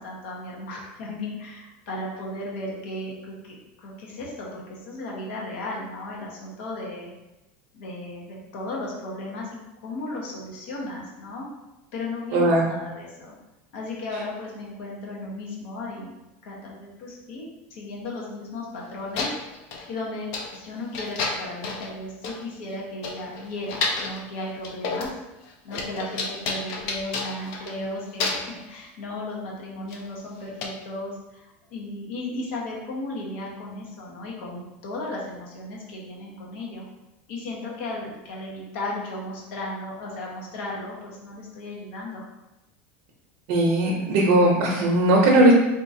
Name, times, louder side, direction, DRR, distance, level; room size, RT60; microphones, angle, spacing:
voice 1, 0.0-7.1 7.7-11.5 11.9-13.4 13.7-16.1 16.4-19.3 19.9-25.1 25.6-36.8 37.3-42.2, left 2 dB, 70° left, -3 dB, 1.0 m, -35 dB
voice 2, 12.3-12.6 43.5-45.5, right 1 dB, 60° right, -3 dB, 0.7 m, -18 dB
sound 1, 18.8-18.9 19.2-19.9 20.3-20.6 20.9-21.9 22.2-22.4 22.7-22.8 23.0-24.2 24.6-25.2 25.4-27.9 28.2-28.6 29.9-30.0 30.6-30.7, left 3 dB, 55° left, 0.5 m, -30 dB
3.7 x 2.8 x 2.6 m, 0.98 s
supercardioid pair, 150°, 7 cm